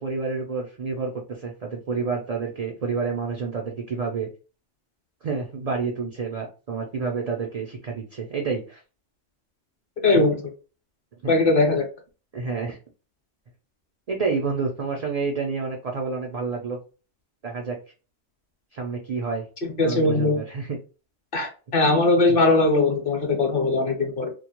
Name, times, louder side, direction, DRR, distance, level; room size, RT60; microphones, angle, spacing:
voice 1, 0.0-4.3 5.2-8.8 10.1-10.2 11.2-11.3 12.3-12.8 14.1-16.8 17.4-17.8 18.7-19.5 19.8-20.8, right 4 dB, 65° right, 1 dB, 0.3 m, -29 dB
voice 2, 10.0-10.4 11.3-11.8 19.8-20.4 21.3-24.3, left 2 dB, 55° left, 2 dB, 0.8 m, -20 dB
2.3 x 2.0 x 2.8 m, 0.33 s
omnidirectional pair, 1.2 m